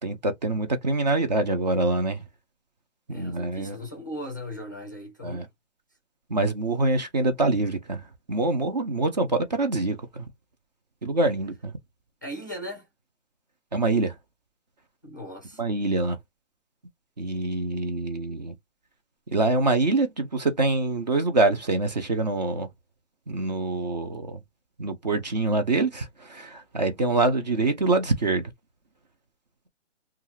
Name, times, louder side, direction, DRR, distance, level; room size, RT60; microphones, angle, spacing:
voice 1, 0.0-2.2 3.1-3.8 5.2-5.4 6.3-10.3 11.0-11.7 13.7-14.1 15.6-16.2 17.2-18.5 19.3-22.7 23.3-24.4 24.8-28.5, right 2 dB, 35° right, 0.5 m, -25 dB
voice 2, 3.1-5.5 12.2-12.9 15.0-15.6, equal, 15° left, 0.4 m, -38 dB
2.6 x 2.4 x 3.0 m
hypercardioid pair, 160°, 37 cm